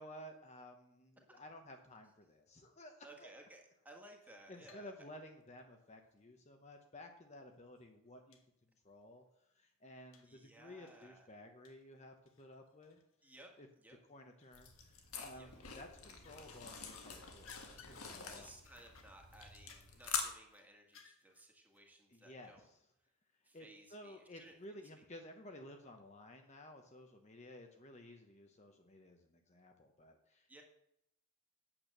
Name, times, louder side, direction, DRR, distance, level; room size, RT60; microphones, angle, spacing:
voice 1, 0.0-3.3 4.5-8.4 8.8-9.2 9.5-13.0 13.6-13.7 14.1-18.5 22.1-22.6 23.5-23.7 23.9-30.5, left 1 dB, 30° left, 4 dB, 1.0 m, -55 dB
voice 2, 3.0-4.9 10.2-11.3 13.2-14.0 15.3-15.5 18.3-22.7 23.4-24.6 30.5-30.6, right 1 dB, 10° right, 1 dB, 1.7 m, -59 dB
sound 1, 4.2-4.9 5.2-6.3 7.1-7.2 7.6-7.7 8.3-8.5 8.8-8.9 10.1-10.4 10.9-13.2 13.5-13.7 14.4-15.0 15.5-15.9 16.2-21.5 21.7-21.8, left 6 dB, 60° left, 1.5 m, -62 dB
sound 2, 14.5-20.2, left 6 dB, 80° left, 1.9 m, -46 dB
8.9 x 8.5 x 6.6 m, 0.80 s
head